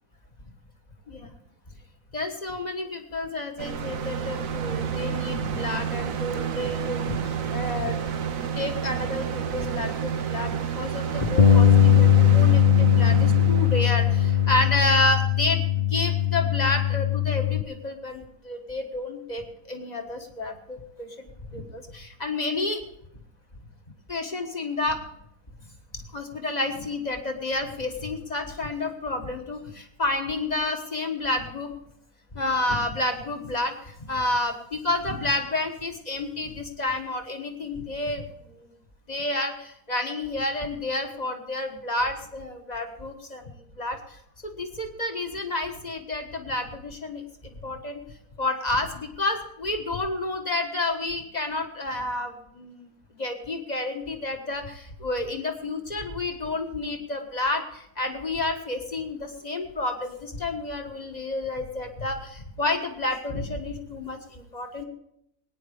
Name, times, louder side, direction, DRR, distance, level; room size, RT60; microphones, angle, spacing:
voice 1, 2.1-8.0 8.5-21.1 21.5-22.8 24.1-25.0 25.9-31.7 32.3-38.7 39.1-44.0 44.4-48.0 48.4-52.9 53.2-64.8, left 2 dB, 30° left, 5 dB, 1.4 m, -30 dB
sound 1, 3.6-14.9, right 7 dB, 60° right, 1.2 m, -30 dB
Bass guitar, 11.4-17.6, left 9 dB, 50° left, 0.7 m, -19 dB
19.0 x 9.6 x 5.0 m, 0.76 s
omnidirectional pair, 1.7 m